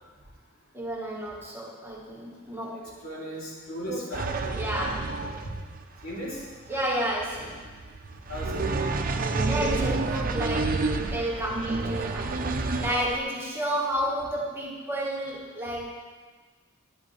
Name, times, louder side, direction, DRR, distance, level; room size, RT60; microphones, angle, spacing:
voice 1, 0.7-2.9 3.9-4.0 4.5-5.2 6.7-7.6 9.5-12.4 12.8-15.9, right 1 dB, 10° right, -3 dB, 1.3 m, -31 dB
voice 2, 2.7-4.5 6.0-6.4 8.3-8.6, equal, 70° left, -6 dB, 2.9 m, -36 dB
sound 1, 4.1-13.2, right 3 dB, 45° right, 0.6 m, -29 dB
11.5 x 9.3 x 3.2 m, 1.5 s
head